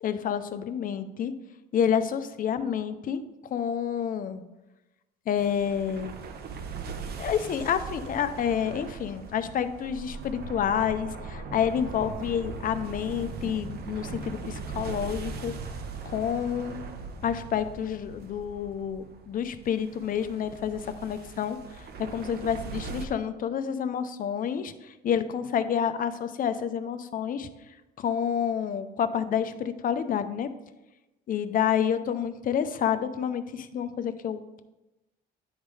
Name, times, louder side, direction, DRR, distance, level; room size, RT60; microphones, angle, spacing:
voice 1, 0.0-1.3 1.7-4.4 5.3-6.2 7.2-15.5 16.0-16.8 17.2-21.6 22.1-27.5 28.0-30.5 31.3-34.6, left 8 dB, 45° left, 11 dB, 0.6 m, -29 dB
sound 1, 5.4-23.1, right 4 dB, 50° right, 0.9 m, -40 dB
9.9 x 3.7 x 4.8 m, 1.0 s
cardioid pair, 110°, 21 cm